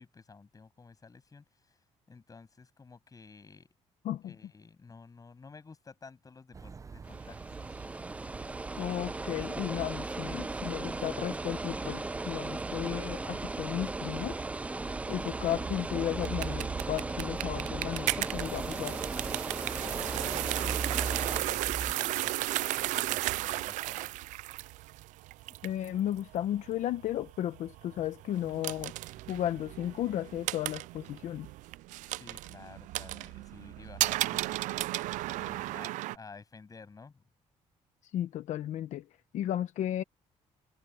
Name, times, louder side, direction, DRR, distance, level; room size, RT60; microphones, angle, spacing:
voice 1, 0.0-1.8 2.1-3.7 4.2-7.7 19.8-24.2 32.1-34.6 35.3-37.2, left 4 dB, 30° left, 7.6 m, -52 dB
sound 1, 6.5-21.9, right 5 dB, 25° right, 0.8 m, -42 dB
sound 2, 7.0-21.4, right 2 dB, 10° right, 0.3 m, -38 dB
voice 2, 8.8-14.4 15.1-19.0 25.6-28.9 29.3-31.5 38.1-39.1 39.3-40.0, left 12 dB, 75° left, 1.1 m, -34 dB
sound 3, 16.2-36.2, right 17 dB, 90° right, 0.4 m, -35 dB
cardioid pair, 105°, 13 cm